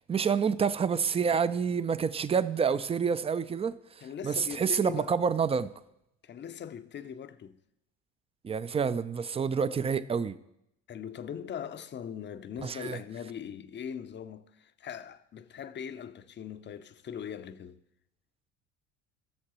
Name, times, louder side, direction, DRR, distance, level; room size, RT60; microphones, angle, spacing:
voice 1, 0.1-3.8 4.2-5.7 8.4-10.4 12.6-13.0, right 6 dB, 15° right, 0.3 m, -28 dB
voice 2, 4.0-5.1 6.2-7.6 10.9-17.8, left 8 dB, 30° left, 0.6 m, -41 dB
19.0 x 6.5 x 3.0 m
supercardioid pair, 75°, 38 cm